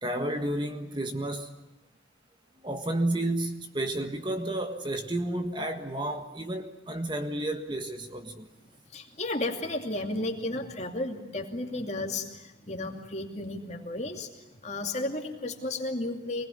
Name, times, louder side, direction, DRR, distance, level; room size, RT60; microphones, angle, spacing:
voice 1, 0.0-1.5 2.6-8.5, right 1 dB, 25° right, 1.6 m, -31 dB
voice 2, 8.9-14.3 14.6-16.5, left 2 dB, 35° left, 2.7 m, -33 dB
25.5 x 20.0 x 10.0 m
head